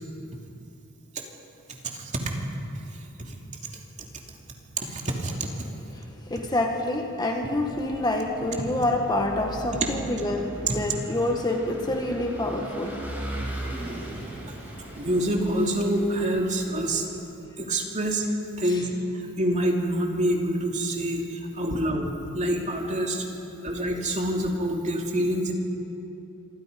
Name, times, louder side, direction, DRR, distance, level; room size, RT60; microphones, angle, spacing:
voice 1, 4.8-5.5 10.7-10.8 15.0-17.0 17.6-18.3 18.6-18.9 19.4-21.2 21.6-23.2 23.6-25.5, right 1 dB, 35° right, 1 dB, 2.8 m, -26 dB
voice 2, 5.9-13.0 13.4-13.6 18.7-18.8 21.7-21.8, left 1 dB, 20° left, 2 dB, 1.6 m, -27 dB
Vehicle / Engine, 7.5-17.2, right 1 dB, 10° right, 5.1 m, -39 dB
26.5 x 24.5 x 5.3 m, 2.9 s
head